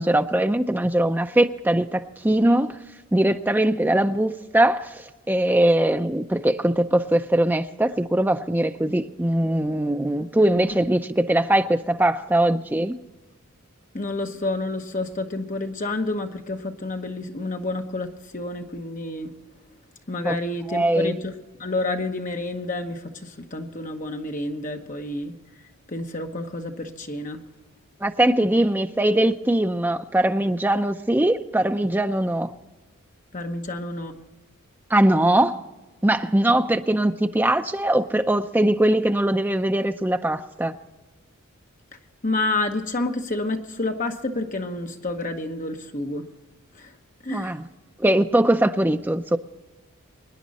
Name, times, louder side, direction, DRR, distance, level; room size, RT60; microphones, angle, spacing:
voice 1, 0.0-2.8 3.1-13.0 20.2-20.4 20.7-21.1 28.0-32.5 34.9-35.6 36.0-40.8 47.3-47.6 48.0-49.4, right 1 dB, 10° right, 7 dB, 0.5 m, -21 dB
voice 2, 13.9-19.6 20.1-25.6 25.9-27.5 33.3-34.2 42.2-46.3 46.7-47.0 47.2-47.6, left 2 dB, 35° left, 4 dB, 1.1 m, -29 dB
24.0 x 10.0 x 4.2 m, 1.2 s
head